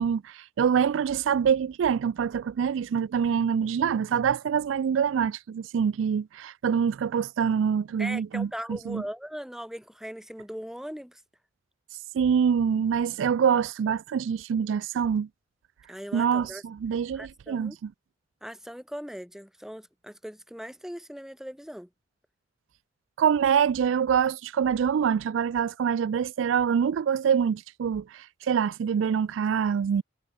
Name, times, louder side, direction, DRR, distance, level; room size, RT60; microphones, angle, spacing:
voice 1, 0.0-9.0 12.1-15.3 16.1-17.9 23.2-30.0, right 7 dB, 75° right, 0.3 m, -25 dB
voice 2, 8.0-11.2 15.9-16.6 17.1-17.8 18.4-21.9, equal, ahead, 3.0 m, -39 dB
head